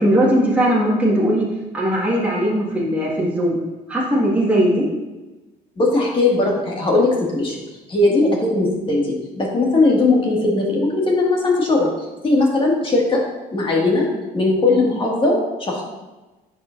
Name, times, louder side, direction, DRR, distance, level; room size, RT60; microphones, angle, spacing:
voice 1, 0.0-1.5 1.7-3.6 3.9-4.8, equal, 10° right, -6 dB, 1.8 m, -18 dB
voice 2, 5.8-7.6 7.9-11.9 12.2-13.2 13.5-14.1 14.3-15.8, left 2 dB, 30° left, -3 dB, 2.0 m, -18 dB
9.8 x 4.9 x 2.6 m, 1.1 s
cardioid pair, 110°, 17 cm